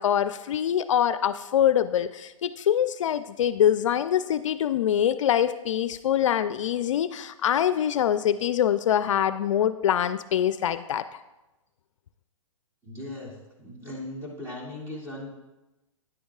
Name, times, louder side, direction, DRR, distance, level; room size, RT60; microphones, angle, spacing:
voice 1, 0.0-11.0, left 10 dB, 65° left, 13 dB, 0.4 m, -24 dB
voice 2, 12.8-15.3, left 1 dB, 15° right, -3 dB, 2.1 m, -38 dB
10.0 x 9.4 x 2.4 m, 1.0 s
hypercardioid pair, 145°, 17 cm